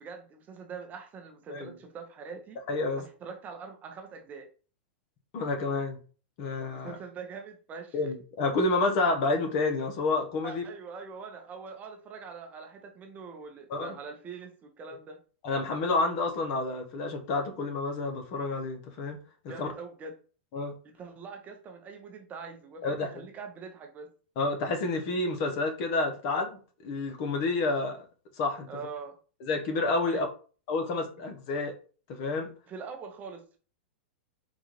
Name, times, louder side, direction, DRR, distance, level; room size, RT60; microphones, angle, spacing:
voice 1, 0.0-2.6 3.0-4.5 6.7-8.0 10.4-15.2 19.5-20.1 20.8-24.1 28.7-29.1 30.1-30.2 32.7-33.6, right 5 dB, 25° right, 0.7 m, -43 dB
voice 2, 2.7-3.0 5.3-6.0 6.4-7.0 7.9-10.6 13.7-13.9 15.4-19.2 19.6-19.7 20.5-20.7 22.8-23.1 24.4-26.6 26.8-28.0 28.4-28.7 29.4-30.3 30.7-31.7 32.1-32.5, left 3 dB, 45° left, 0.8 m, -29 dB
3.9 x 2.4 x 3.0 m
hypercardioid pair, 125°, 6 cm